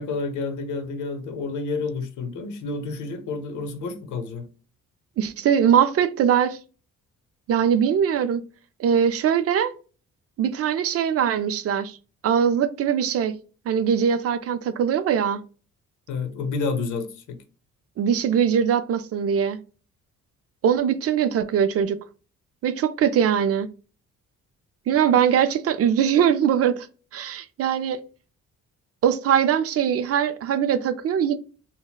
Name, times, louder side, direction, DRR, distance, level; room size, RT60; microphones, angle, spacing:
voice 1, 0.0-4.5 16.1-17.4, left 4 dB, 75° left, 0.7 m, -29 dB
voice 2, 5.2-6.6 7.5-8.4 8.8-9.7 10.4-12.0 12.2-13.3 13.7-15.4 18.0-19.6 20.6-22.0 22.6-23.7 24.9-26.9 27.1-28.0 29.0-31.4, right 8 dB, 50° right, 0.4 m, -21 dB
3.9 x 2.1 x 2.3 m
cardioid pair, 90°, 30 cm